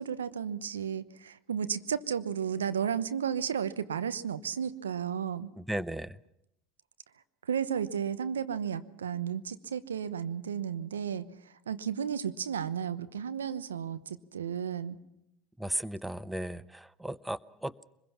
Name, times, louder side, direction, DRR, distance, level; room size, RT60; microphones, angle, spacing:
voice 1, 0.0-5.5 7.5-15.0, right 8 dB, 85° right, 13 dB, 1.0 m, -33 dB
voice 2, 5.6-6.2 15.6-17.8, right 1 dB, 5° right, 17 dB, 0.7 m, -35 dB
24.5 x 21.5 x 5.9 m, 0.82 s
hypercardioid pair, 75°, 0 cm